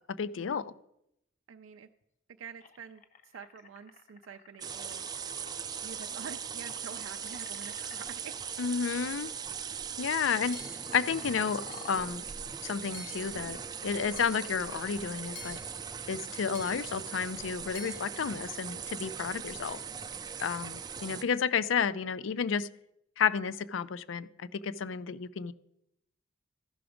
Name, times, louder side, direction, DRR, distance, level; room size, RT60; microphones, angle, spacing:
voice 1, 0.2-0.7 8.6-9.3 10.0-10.6 10.9-12.2 12.6-13.6 13.8-15.6 16.1-19.8 20.4-22.7 23.2-25.5, left 6 dB, 80° left, 16 dB, 0.4 m, -31 dB
voice 2, 1.5-1.9 2.4-3.0 3.3-5.1 5.8-8.3 21.0-21.3, right 6 dB, 90° right, 6 dB, 0.4 m, -47 dB
sound 1, 2.0-2.1 2.6-8.0 9.0-9.2 9.5-9.8 10.3-15.1, left 4 dB, 40° left, 0.7 m, -53 dB
sound 2, 4.6-21.2, right 7 dB, 20° right, 0.3 m, -40 dB
Hammer / Chink clink, 10.5-11.0 11.7-12.1 12.9-13.4 14.2-14.5 15.4-15.8 16.6-17.0 17.8-18.0, left 5 dB, 60° left, 1.0 m, -49 dB
14.0 x 5.9 x 5.0 m, 0.82 s
head